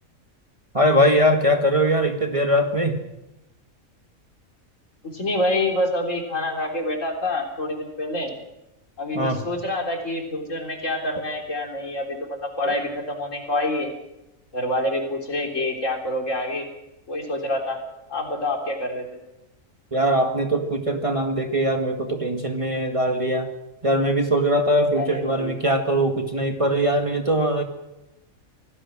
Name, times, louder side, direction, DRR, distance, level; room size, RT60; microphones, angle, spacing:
voice 1, 0.7-3.0 9.1-9.4 12.7-12.8 19.9-23.5 23.8-27.6, equal, 25° right, 4 dB, 1.9 m, -21 dB
voice 2, 5.0-8.3 9.0-13.9 14.5-16.6 17.1-17.8 18.1-19.1 25.0-25.6, left 1 dB, 65° left, 2 dB, 4.0 m, -27 dB
26.0 x 18.0 x 6.2 m, 0.94 s
omnidirectional pair, 1.4 m